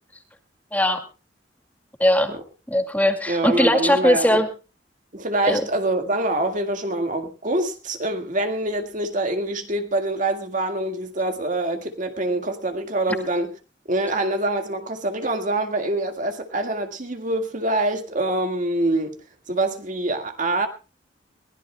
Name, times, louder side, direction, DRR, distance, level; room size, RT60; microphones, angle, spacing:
voice 1, 2.0-2.3 2.7-4.5 5.5-5.6, left 1 dB, 10° left, 2.2 m, -19 dB
voice 2, 3.3-4.4 5.1-13.5 13.9-19.2 19.5-20.7, right 2 dB, 45° right, 1.9 m, -25 dB
22.5 x 17.5 x 2.3 m
head